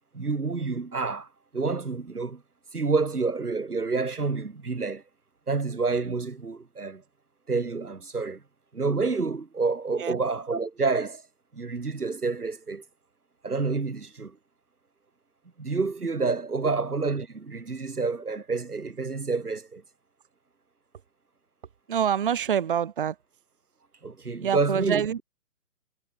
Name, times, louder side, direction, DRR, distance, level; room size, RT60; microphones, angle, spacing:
voice 1, 0.1-1.3 1.5-2.4 2.7-5.0 5.5-7.0 7.5-8.4 8.7-11.2 11.5-12.8 13.4-14.4 15.6-19.8 24.0-25.2, right 4 dB, 75° right, 4.2 m, -28 dB
voice 2, 21.9-23.2 24.4-25.2, right 9 dB, 35° right, 0.9 m, -26 dB
figure-of-eight pair, 145°, 45 cm